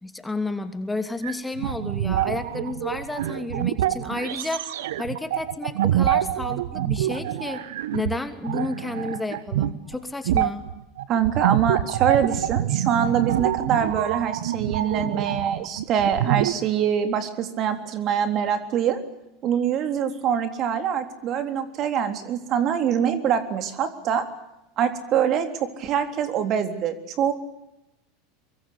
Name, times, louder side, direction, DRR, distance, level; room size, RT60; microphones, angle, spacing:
voice 1, 0.0-7.6 7.9-10.6, left 2 dB, 10° left, 8 dB, 2.8 m, -31 dB
sound 1, 1.2-8.2 8.4-10.0 10.3-16.5, right 12 dB, 75° right, 1.3 m, -26 dB
voice 2, 11.1-19.0 19.4-24.3 24.8-27.3, right 8 dB, 45° right, 8 dB, 3.6 m, -24 dB
24.0 x 23.5 x 8.6 m, 0.90 s
hypercardioid pair, 90°, 0 cm